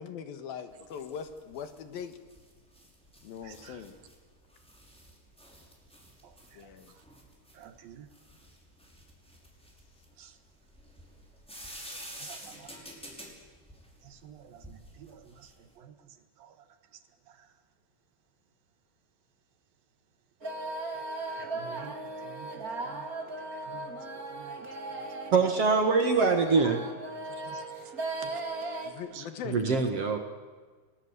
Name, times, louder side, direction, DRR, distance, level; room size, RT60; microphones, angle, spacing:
voice 1, 0.0-2.2 3.2-3.9 6.5-6.9 28.8-29.7, left 7 dB, 70° left, 9 dB, 3.2 m, -41 dB
sound 1, 0.7-15.7, equal, ahead, 5.2 m, -50 dB
voice 2, 3.4-3.8 6.2-6.7 7.5-8.1 10.2-10.4 11.6-11.8 12.2-12.8 14.0-16.0 16.4-16.5 17.3-17.5 20.9-23.1 23.5-24.7 27.3-27.9 28.3-28.4 29.1-29.3, right 8 dB, 70° right, 9 dB, 3.0 m, -51 dB
sound 2, 20.4-28.9, right 2 dB, 25° right, 2.4 m, -37 dB
voice 3, 25.3-26.8 29.4-30.2, right 4 dB, 50° right, 5 dB, 2.2 m, -24 dB
30.0 x 20.0 x 8.2 m, 1.5 s
omnidirectional pair, 4.6 m